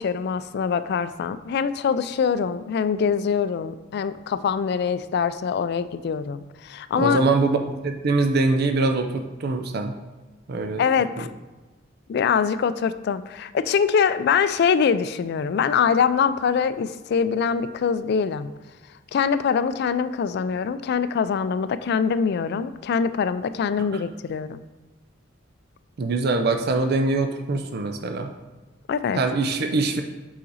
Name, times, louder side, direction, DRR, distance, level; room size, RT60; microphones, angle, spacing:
voice 1, 0.0-7.2 10.8-11.3 12.1-18.5 19.1-24.6 28.9-29.2, left 6 dB, 55° left, 13 dB, 0.3 m, -23 dB
voice 2, 7.0-7.6 7.8-9.9 10.5-10.8 26.0-28.3 29.2-30.0, right 3 dB, 55° right, 6 dB, 0.5 m, -23 dB
5.5 x 5.0 x 4.0 m, 1.2 s
head